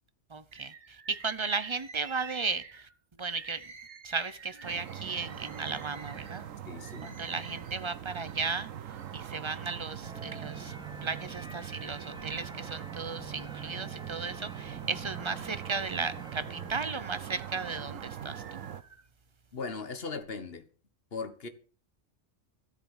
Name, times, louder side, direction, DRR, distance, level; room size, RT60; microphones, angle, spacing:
voice 1, 0.3-2.9 3.2-3.7 4.0-6.4 7.0-8.7 9.1-10.7 11.0-18.6, right 4 dB, 30° right, 0.7 m, -35 dB
Bird, 0.5-9.4 10.0-11.0 11.5-12.5 12.9-14.3 14.8-19.1 19.8-20.2, right 4 dB, 50° right, 1.5 m, -52 dB
sound 1, 4.6-18.8, right 9 dB, 90° right, 1.3 m, -42 dB
voice 2, 6.6-7.1 19.5-20.7 21.1-21.5, left 4 dB, 50° left, 1.7 m, -38 dB
sound 2, 10.0-16.7, right 2 dB, 5° right, 1.0 m, -47 dB
13.5 x 7.9 x 7.2 m
omnidirectional pair, 1.3 m